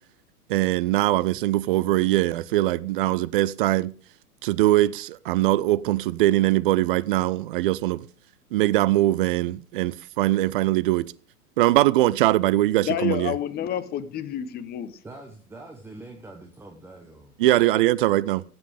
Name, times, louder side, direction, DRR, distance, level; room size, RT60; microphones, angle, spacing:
voice 1, 0.5-3.9 4.4-8.1 8.5-11.1 11.6-13.3 17.4-18.4, right 15 dB, 35° right, 0.5 m, -22 dB
voice 2, 12.8-15.0, left 10 dB, 20° left, 0.9 m, -29 dB
voice 3, 15.0-17.3, right 2 dB, 5° right, 1.1 m, -44 dB
15.5 x 8.0 x 4.9 m
figure-of-eight pair, 105°, 46 cm